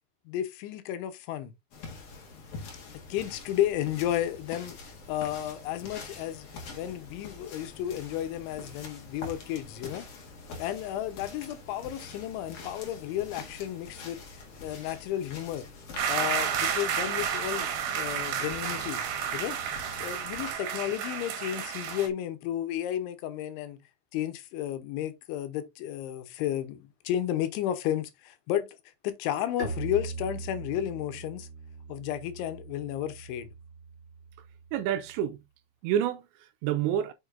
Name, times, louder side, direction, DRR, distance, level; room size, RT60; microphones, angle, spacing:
voice 1, 0.3-1.5 3.1-4.8 5.1-6.5 6.7-10.1 10.6-15.7 16.1-17.7 18.0-19.0 19.3-19.6 20.0-23.8 24.1-28.7 29.0-31.5 31.9-33.5, left 11 dB, 85° left, 3.2 m, -32 dB
sound 1, 1.7-20.5, left 3 dB, 65° left, 1.4 m, -45 dB
sound 2, 16.0-22.1, right 8 dB, 65° right, 2.8 m, -31 dB
Bowed string instrument, 29.6-35.2, right 4 dB, 20° left, 1.6 m, -41 dB
voice 2, 34.7-35.4 35.8-37.1, right 10 dB, 80° right, 2.8 m, -28 dB
7.0 x 6.6 x 2.6 m
omnidirectional pair, 5.5 m